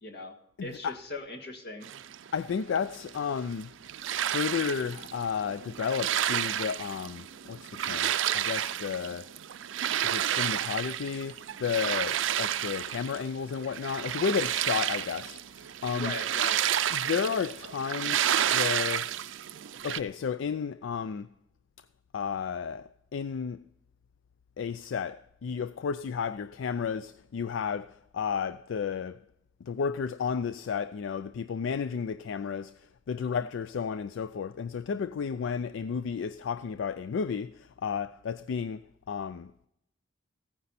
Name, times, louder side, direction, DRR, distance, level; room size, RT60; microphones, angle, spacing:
voice 1, 0.0-0.3 0.6-1.9 15.9-16.6 33.2-33.5, left 2 dB, 55° left, 1.6 m, -39 dB
voice 2, 0.6-0.9 2.3-3.7 4.3-9.3 10.0-16.1 16.9-19.2 19.8-21.3 22.1-23.6 24.6-29.2 29.6-39.5, left 6 dB, 75° left, 0.4 m, -32 dB
sound 1, 1.8-20.0, right 10 dB, 75° right, 0.5 m, -31 dB
15.5 x 9.5 x 4.1 m
head